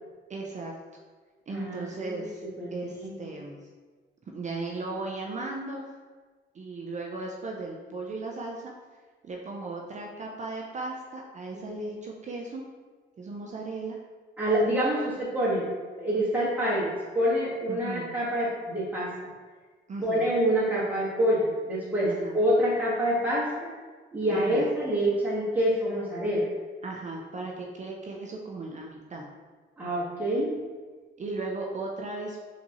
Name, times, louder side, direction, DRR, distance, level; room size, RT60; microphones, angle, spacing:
voice 1, 0.3-0.7 1.5-2.4 2.7-3.6 4.3-5.9 6.5-8.7 9.2-12.6 13.2-14.0 17.7-18.1 19.9-20.3 22.0-22.4 24.3-24.7 26.8-29.2 31.2-32.4, right 3 dB, 35° right, 0 dB, 0.5 m, -36 dB
voice 2, 1.5-2.2 2.6-3.3 11.7-11.8 14.4-15.7 16.0-16.9 17.1-19.1 20.0-23.7 24.1-26.5 29.8-30.5, equal, 10° right, -7 dB, 1.3 m, -26 dB
4.4 x 2.7 x 2.8 m, 1.4 s
cardioid pair, 90°, 20 cm